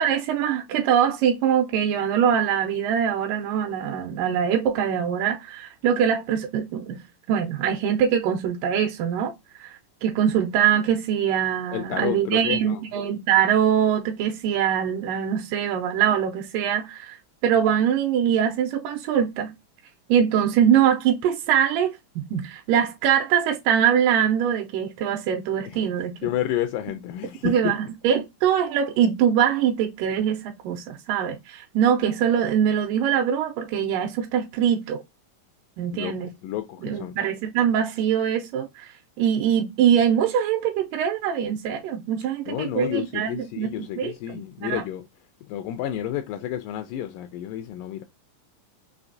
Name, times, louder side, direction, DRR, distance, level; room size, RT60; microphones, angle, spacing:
voice 1, 0.0-7.0 7.3-9.3 9.6-17.2 17.4-19.5 20.1-26.3 27.4-35.0 35.8-36.3 36.8-43.7 44.0-44.8, right 9 dB, 80° right, 2.1 m, -23 dB
voice 2, 11.7-12.8 25.7-25.8 26.2-27.7 35.9-36.2 36.4-37.2 42.5-45.1 45.5-48.0, left 12 dB, 80° left, 2.1 m, -30 dB
5.8 x 2.7 x 2.6 m
omnidirectional pair, 4.0 m